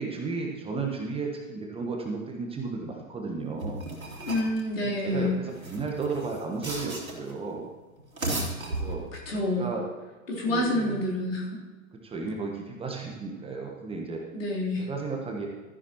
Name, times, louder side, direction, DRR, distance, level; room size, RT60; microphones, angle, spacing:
voice 1, 0.0-3.8 4.8-7.7 8.7-9.1 9.5-9.9 10.4-11.0 12.0-14.2 14.8-15.5, right 4 dB, 15° right, 0 dB, 1.3 m, -34 dB
sound 1, 3.6-4.6 5.5-7.3 8.0-9.3, right 2 dB, 85° right, 2.6 m, -34 dB
voice 2, 4.2-5.4 9.3-9.7 10.3-11.6 14.3-14.9, left 1 dB, 65° left, -5 dB, 3.5 m, -28 dB
13.5 x 10.5 x 3.0 m, 1.2 s
figure-of-eight pair, 100°, 41 cm